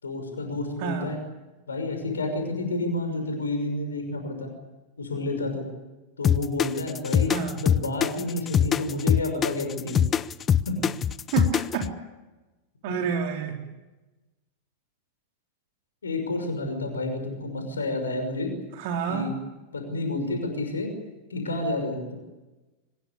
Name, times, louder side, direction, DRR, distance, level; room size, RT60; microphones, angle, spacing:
voice 1, 0.0-1.2 1.7-4.5 5.0-5.6 6.2-7.3 7.6-10.0 10.7-10.8 12.9-13.0 16.0-18.5 19.1-19.3 19.7-20.9 21.3-22.2, left 2 dB, 80° left, 5 dB, 5.9 m, -30 dB
voice 2, 0.8-1.1 7.3-7.6 11.3-11.9 12.8-13.6 18.8-19.3, right 7 dB, 55° right, 3 dB, 3.7 m, -28 dB
sound 1, 6.2-11.9, left 8 dB, 25° left, 0.7 m, -23 dB
23.5 x 21.0 x 8.8 m, 1.1 s
figure-of-eight pair, 90°, 0 cm